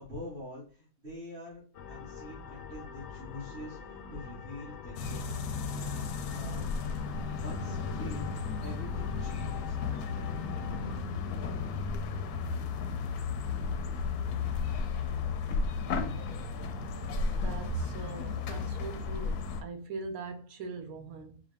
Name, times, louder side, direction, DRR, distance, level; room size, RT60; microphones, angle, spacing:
voice 1, 0.0-1.6 1.9-5.3 5.7-7.1 7.4-8.3 8.6-10.8, left 1 dB, 35° right, 2.0 m, -45 dB
sound 1, 1.7-11.0, left 6 dB, 70° left, 0.7 m, -46 dB
sound 2, 5.0-19.6, left 5 dB, 85° left, 1.1 m, -34 dB
voice 2, 17.3-21.4, right 4 dB, 70° right, 1.2 m, -40 dB
4.8 x 2.4 x 3.4 m
omnidirectional pair, 1.6 m